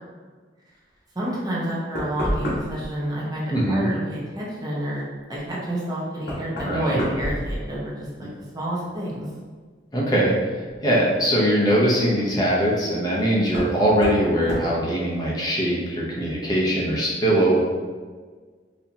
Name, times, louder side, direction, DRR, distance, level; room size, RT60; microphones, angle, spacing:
voice 1, 1.1-8.3 8.5-9.3, right 1 dB, 20° right, -6 dB, 0.7 m, -29 dB
Knock, 2.0-2.9 5.3-5.4 6.2-8.1 8.4-9.0 10.7-10.8 13.5-13.8 14.0-14.2 14.5-14.7, equal, 65° left, 1.2 m, -29 dB
voice 2, 3.5-3.9 6.6-7.0 8.2-8.3 9.9-10.3 10.8-17.6, right 1 dB, 20° left, -5 dB, 0.7 m, -21 dB
4.2 x 2.8 x 2.7 m, 1.5 s
head